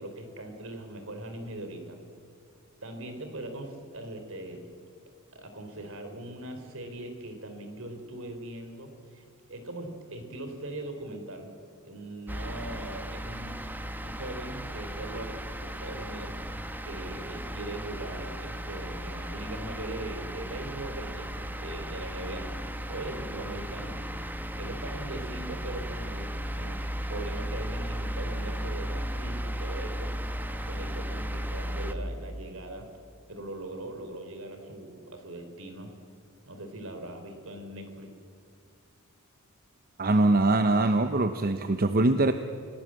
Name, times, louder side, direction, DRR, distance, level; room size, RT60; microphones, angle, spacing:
voice 1, 0.0-2.0 2.8-4.6 5.3-9.2 9.5-11.5 11.8-13.7 14.0-16.3 16.8-22.6 22.9-24.0 24.6-26.8 27.1-30.1 30.7-32.9 33.3-35.9 36.5-38.1, right 1 dB, 65° right, 6 dB, 3.7 m, -40 dB
sound 1, 12.3-31.9, equal, 10° right, 1.2 m, -35 dB
voice 2, 40.0-42.3, right 2 dB, 45° right, 9 dB, 0.8 m, -23 dB
29.5 x 18.0 x 7.6 m, 2.4 s
head